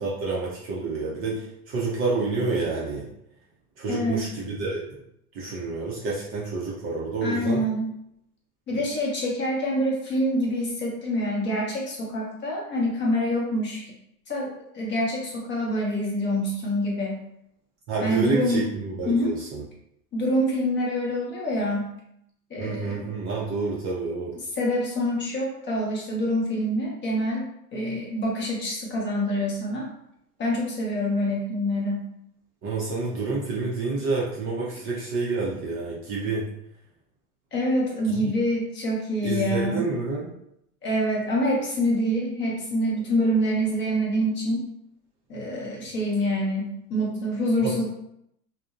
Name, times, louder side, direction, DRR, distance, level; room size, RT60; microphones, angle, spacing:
voice 1, 0.0-3.1 3.8-4.9 5.3-7.6 8.7-8.8 17.9-19.6 22.6-24.3 32.6-36.5 38.1-38.3 39.2-40.3 47.6-47.8, right 3 dB, 30° right, -5 dB, 0.5 m, -28 dB
voice 2, 3.9-4.2 7.2-7.9 8.7-13.9 14.3-17.2 18.0-18.6 19.1-19.3 20.1-21.9 22.5-23.0 24.6-27.5 27.7-29.9 30.4-32.1 37.5-39.8 40.8-44.7 45.3-47.8, equal, 25° left, -3 dB, 0.7 m, -26 dB
2.5 x 2.0 x 2.4 m, 0.77 s
hypercardioid pair, 105°, 46 cm